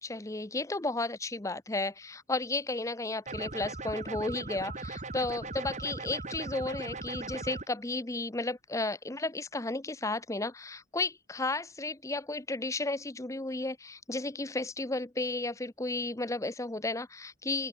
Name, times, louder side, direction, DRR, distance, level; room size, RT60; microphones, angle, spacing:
voice 1, 0.0-17.7, left 2 dB, 15° left, 0.8 m, -33 dB
sound 1, 3.3-7.7, right 2 dB, 40° right, 3.0 m, -39 dB
open air
head